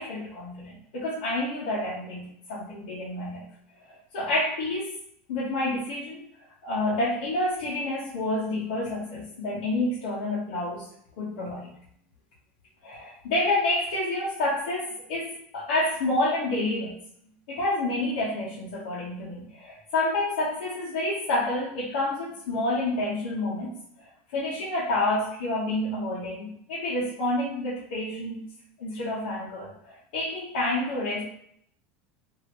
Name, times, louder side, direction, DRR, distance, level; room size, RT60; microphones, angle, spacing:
voice 1, 0.0-3.4 4.1-4.9 5.3-6.2 6.6-10.9 11.2-11.7 12.8-16.9 17.5-23.8 24.3-28.4 28.8-31.2, left 2 dB, 80° left, -9 dB, 1.1 m, -29 dB
3.4 x 2.8 x 3.0 m, 0.69 s
supercardioid pair, 170°, 5 cm